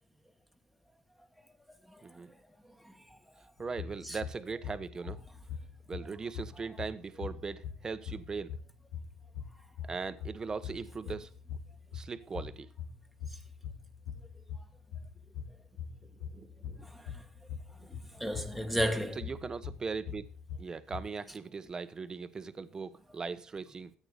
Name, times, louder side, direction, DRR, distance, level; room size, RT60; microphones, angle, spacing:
sound 1, 3.6-21.0, left 7 dB, 80° left, 3.0 m, -43 dB
voice 1, 3.6-5.2 5.9-8.6 9.9-11.3 11.9-12.7 16.0-16.9 17.8-17.9 19.2-20.2 20.6-23.9, right 4 dB, 25° right, 1.3 m, -39 dB
voice 2, 16.9-17.2 17.9-19.2, equal, ahead, 2.0 m, -34 dB
13.5 x 9.0 x 5.1 m
supercardioid pair, 85°, 3 cm